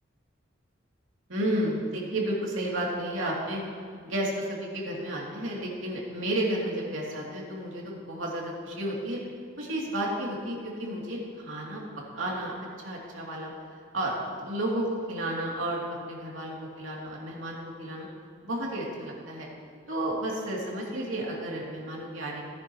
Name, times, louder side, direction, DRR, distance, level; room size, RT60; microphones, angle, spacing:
voice 1, 1.3-3.6 4.0-9.2 9.6-11.8 12.1-13.5 13.9-18.1 18.4-19.5 19.9-22.4, right 1 dB, 85° right, -3 dB, 3.0 m, -32 dB
18.0 x 10.5 x 3.1 m, 2.3 s
head